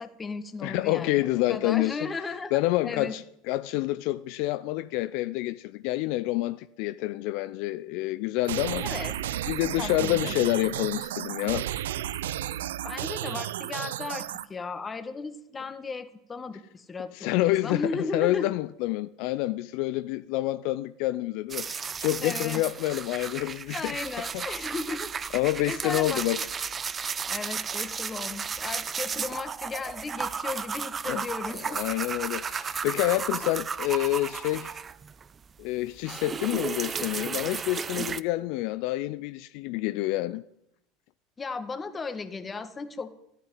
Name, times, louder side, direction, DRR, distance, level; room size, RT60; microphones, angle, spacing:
voice 1, 0.0-3.1 8.8-9.1 9.8-10.4 12.8-18.5 22.2-22.6 23.7-25.1 25.7-26.2 27.3-31.8 33.4-33.5 41.4-43.2, left 4 dB, 25° left, 1.7 m, -36 dB
voice 2, 0.6-2.1 2.5-9.0 9.5-11.7 17.1-24.0 24.3-24.4 25.3-26.4 31.1-31.2 31.7-34.8 35.6-40.4, left 17 dB, 60° left, 0.5 m, -28 dB
sound 1, 8.4-14.5, right 12 dB, 75° right, 0.6 m, -33 dB
sound 2, 21.5-35.3 35.6-38.2, right 6 dB, 30° right, 0.7 m, -34 dB
14.0 x 9.3 x 9.2 m
hypercardioid pair, 80°, 0 cm